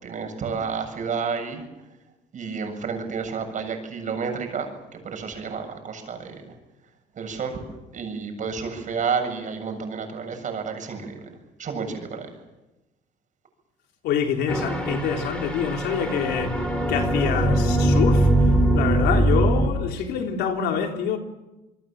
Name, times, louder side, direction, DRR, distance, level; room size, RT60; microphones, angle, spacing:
voice 1, 0.0-1.6 2.3-6.5 7.2-11.3 11.6-12.3, right 5 dB, 50° right, 7.5 m, -30 dB
voice 2, 14.0-21.2, left 7 dB, 80° left, 3.5 m, -26 dB
sound 1, 14.5-19.7, right 1 dB, 5° left, 5.5 m, -21 dB
27.0 x 22.5 x 7.6 m
cardioid pair, 110°, 17 cm